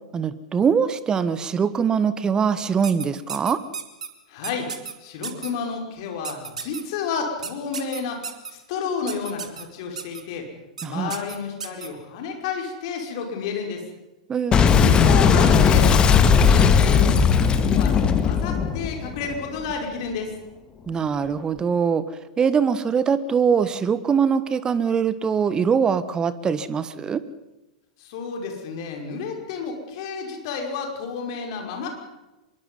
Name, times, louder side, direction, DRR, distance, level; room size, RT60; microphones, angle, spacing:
voice 1, 0.1-3.6 10.8-11.1 14.3-15.2 20.9-22.0 22.4-27.2, right 6 dB, 20° right, 15 dB, 1.3 m, -22 dB
sound 1, 2.8-4.1 4.4-4.9 5.2-5.5 6.2-6.8 7.4-8.5 9.1-9.6 10.0-10.2 10.8-10.9 11.1-11.9, right 6 dB, 70° right, 2.4 m, -33 dB
voice 2, 4.3-4.7 5.0-8.2 8.5-10.5 10.8-13.8 14.8-17.3 17.6-20.3 28.0-31.9, left 5 dB, 50° left, 2 dB, 5.7 m, -31 dB
Boom, 14.5-19.7, left 6 dB, 20° left, 1.9 m, -17 dB
25.5 x 22.5 x 5.6 m, 1.0 s
figure-of-eight pair, 95°, 4 cm